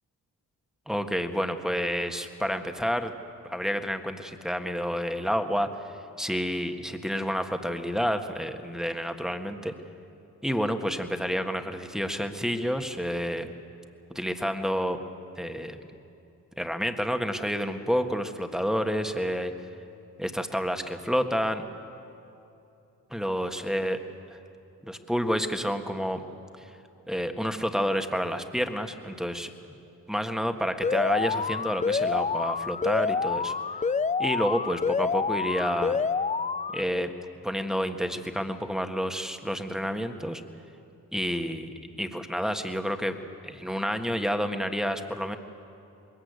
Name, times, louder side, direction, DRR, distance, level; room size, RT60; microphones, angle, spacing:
voice 1, 0.9-3.1 3.4-9.7 10.4-13.5 14.1-15.0 15.4-15.8 16.6-19.5 20.2-21.6 23.1-24.0 24.8-26.2 26.6-26.7 27.1-29.5 30.1-33.5 34.2-36.0 36.7-37.1 37.4-40.4 41.1-41.7 42.0-43.2 43.4-45.4, equal, ahead, 6 dB, 1.6 m, -29 dB
Alarm, 30.8-36.8, left 5 dB, 20° left, 0.4 m, -28 dB
21.0 x 18.5 x 8.2 m, 2.8 s
supercardioid pair, 55°, 39 cm